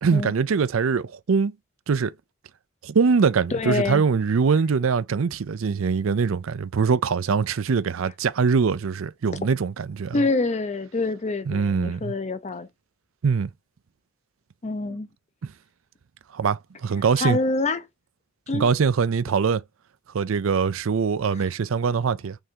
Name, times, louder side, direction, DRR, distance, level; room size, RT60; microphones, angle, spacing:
voice 1, 0.0-1.5 1.9-2.1 2.8-10.2 11.5-12.1 13.2-13.5 16.3-17.4 18.5-19.6 20.1-22.4, right 5 dB, 85° right, 0.5 m, -23 dB
voice 2, 3.5-4.0 10.1-12.7 14.6-15.1 17.2-17.9 18.5-18.7 21.4-21.5, left 3 dB, 35° left, 0.6 m, -26 dB
5.4 x 3.5 x 2.8 m
head